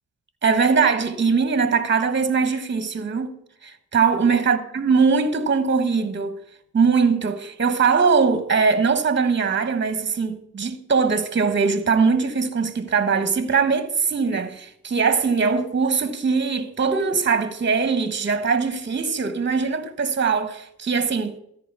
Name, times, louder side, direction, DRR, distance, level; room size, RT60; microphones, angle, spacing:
voice 1, 0.4-3.3 3.6-6.4 6.7-21.3, right 5 dB, 35° right, 1.2 m, -21 dB
13.5 x 5.0 x 6.2 m
supercardioid pair, 45°, 33 cm